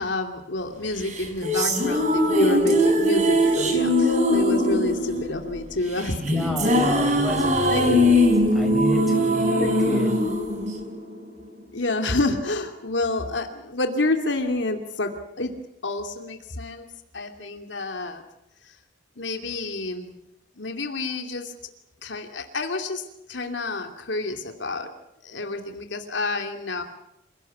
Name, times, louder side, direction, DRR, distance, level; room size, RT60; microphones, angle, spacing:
voice 1, 0.0-6.9 7.7-8.2 9.6-9.7 11.7-15.5 15.8-16.9 17.1-18.2 18.6-18.7 19.2-20.2 20.6-21.5 22.0-24.9 25.2-26.8, left 2 dB, 70° left, 5 dB, 2.7 m, -28 dB
sound 1, 1.0-11.5, left 1 dB, 40° right, 5.4 m, -21 dB
voice 2, 6.2-8.3 8.5-10.1, equal, ahead, 3 dB, 6.6 m, -30 dB
28.0 x 18.0 x 8.6 m, 0.84 s
head